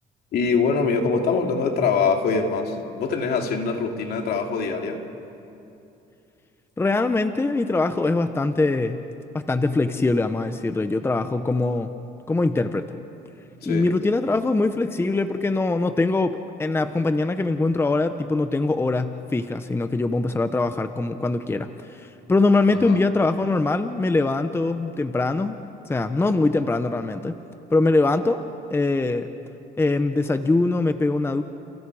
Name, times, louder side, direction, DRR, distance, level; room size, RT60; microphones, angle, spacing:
voice 1, 0.3-5.0 13.6-13.9 22.7-23.0, left 5 dB, 70° left, 2 dB, 3.0 m, -23 dB
voice 2, 6.8-9.0 9.3-11.9 12.3-12.9 13.6-25.6 25.8-27.4 27.7-28.4 28.7-29.3 29.8-31.4, left 3 dB, 15° left, 9 dB, 0.9 m, -22 dB
29.5 x 29.5 x 4.9 m, 2.8 s
cardioid pair, 110°, 17 cm